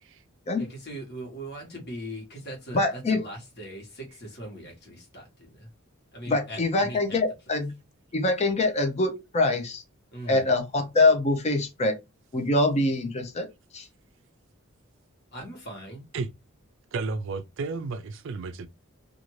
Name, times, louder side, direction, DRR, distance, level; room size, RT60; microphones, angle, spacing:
voice 1, 0.6-5.7 6.1-7.2 7.5-7.6 10.1-10.4 15.3-16.0, right 1 dB, 50° left, 1.3 m, -40 dB
voice 2, 2.7-3.2 6.3-7.7 8.1-9.8 10.3-11.9 12.3-13.5 13.7-13.9, left 2 dB, 30° left, 0.6 m, -24 dB
voice 3, 16.9-18.7, right 4 dB, 60° right, 0.4 m, -32 dB
2.6 x 2.4 x 3.0 m
head